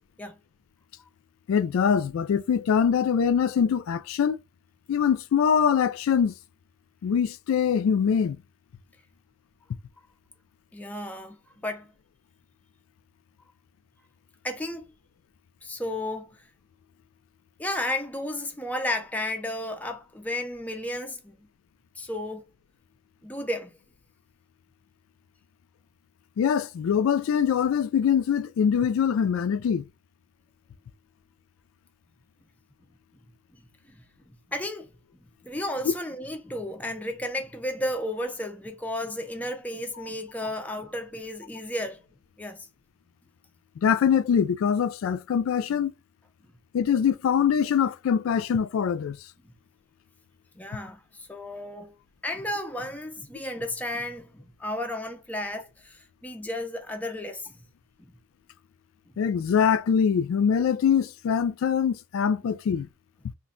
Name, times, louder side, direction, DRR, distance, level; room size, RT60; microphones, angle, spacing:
voice 1, 1.5-4.4 4.9-6.3 7.0-8.4 26.4-29.8 43.8-45.9 46.7-49.2 59.2-62.9, left 7 dB, 85° left, 0.3 m, -23 dB
voice 2, 10.7-11.9 14.4-14.8 15.6-16.4 17.6-21.4 22.0-22.5 23.2-23.7 33.5-33.6 33.9-34.0 34.5-34.9 35.4-42.0 42.4-42.7 49.4-49.5 50.6-51.9 52.2-57.6, left 1 dB, 10° left, 0.4 m, -33 dB
2.5 x 2.1 x 3.7 m
head